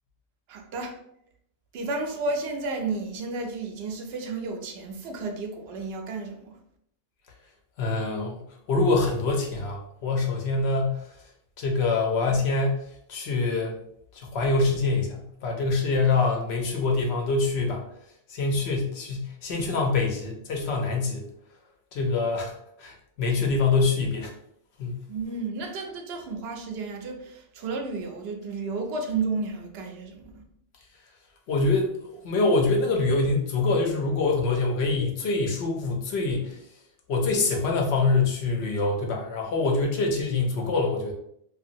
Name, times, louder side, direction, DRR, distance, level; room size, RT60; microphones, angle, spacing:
voice 1, 0.5-1.0 1.7-6.6 25.1-30.4, right 3 dB, 80° right, 4 dB, 0.8 m, -32 dB
voice 2, 7.8-8.4 8.7-11.1 11.6-12.8 13.1-13.8 14.1-17.8 18.3-21.2 21.9-22.5 22.8-24.3 24.8-25.0 31.5-36.6 37.1-41.1, left 3 dB, 90° left, 1 dB, 0.9 m, -25 dB
2.8 x 2.4 x 2.5 m, 0.73 s
omnidirectional pair, 1.0 m